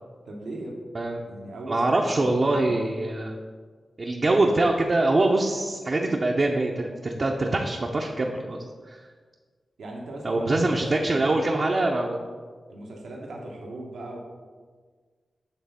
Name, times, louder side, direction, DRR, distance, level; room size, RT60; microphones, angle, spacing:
voice 1, 0.2-0.8 1.2-2.8 9.8-11.4 12.7-14.2, right 1 dB, 90° right, -1 dB, 1.0 m, -39 dB
voice 2, 1.7-3.4 4.0-9.0 10.2-12.2, right 2 dB, 50° right, 0 dB, 0.6 m, -24 dB
7.2 x 3.4 x 5.6 m, 1.5 s
cardioid pair, 55°, 0 cm